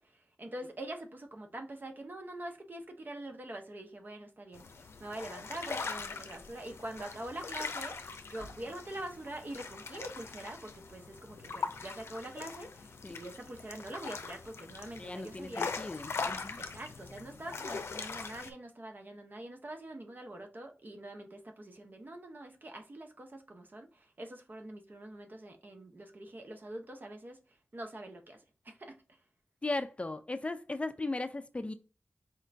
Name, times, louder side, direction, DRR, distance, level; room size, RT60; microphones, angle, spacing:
voice 1, 0.0-4.6 5.0-15.7 16.6-27.4 27.7-28.9, right 1 dB, 50° right, 0.8 m, -44 dB
sound 1, 4.5-18.5, left 4 dB, 85° left, 0.5 m, -41 dB
voice 2, 15.0-16.6 29.6-31.7, left 2 dB, 30° left, 0.4 m, -37 dB
4.5 x 2.5 x 3.2 m
cardioid pair, 55°, 4 cm